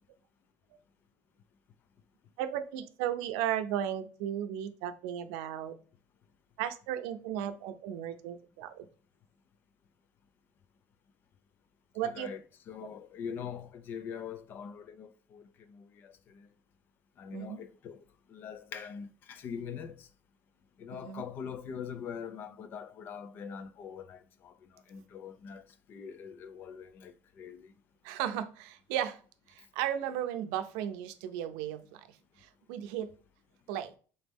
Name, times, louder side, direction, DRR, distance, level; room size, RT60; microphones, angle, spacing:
voice 1, 2.4-5.8 6.6-8.9 11.9-12.3 12.8-12.9 17.3-17.6 20.9-21.2 28.0-29.2 29.5-33.1 33.7-33.9, right 10 dB, 80° right, 0.5 m, -35 dB
voice 2, 12.0-12.4 12.7-15.4 15.7-16.5 17.2-18.0 18.3-20.1 20.8-24.5 24.9-25.6 25.9-27.7, left 7 dB, 30° left, 0.3 m, -43 dB
4.2 x 3.1 x 3.4 m
cardioid pair, 180°, 7 cm